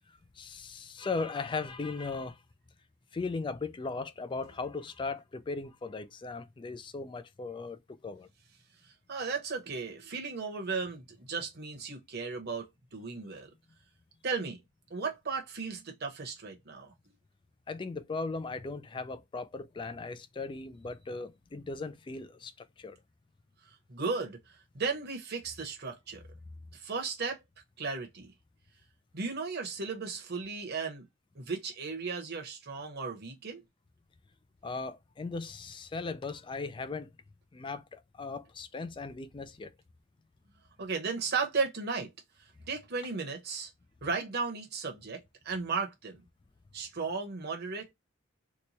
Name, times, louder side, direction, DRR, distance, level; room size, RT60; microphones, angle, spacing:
voice 1, 0.4-2.4 3.1-8.3 17.7-23.0 34.6-37.1 37.5-39.7, left 4 dB, 25° left, 0.3 m, -38 dB
voice 2, 8.8-13.5 14.2-14.6 14.9-16.9 23.9-26.2 26.7-27.4 27.8-28.3 29.1-31.0 31.3-33.6 40.8-42.1 42.7-43.7 44.0-46.2 46.7-47.9, right 4 dB, 55° right, 0.9 m, -35 dB
2.9 x 2.2 x 3.9 m
head